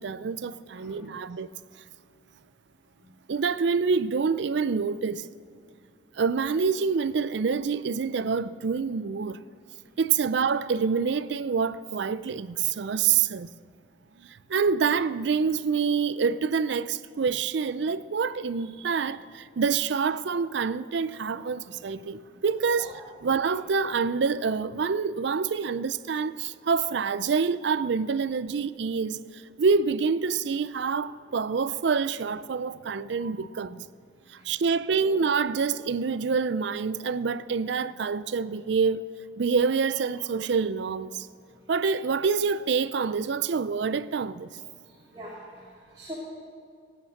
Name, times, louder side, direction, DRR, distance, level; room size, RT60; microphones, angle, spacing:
voice 1, 0.0-1.5 3.3-5.2 6.2-9.4 10.0-13.5 14.5-22.9 23.2-29.2 29.6-33.8 34.4-39.0 39.4-41.3 41.7-44.5, right 5 dB, 65° right, 0.4 m, -26 dB
voice 2, 0.7-1.2 2.9-3.1 5.7-5.8 9.8-10.0 21.7-22.4 22.8-22.9 34.2-34.6 35.0-35.1 41.5-41.7 44.8-46.2, equal, 25° right, 2.5 m, -46 dB
17.0 x 8.8 x 6.5 m
head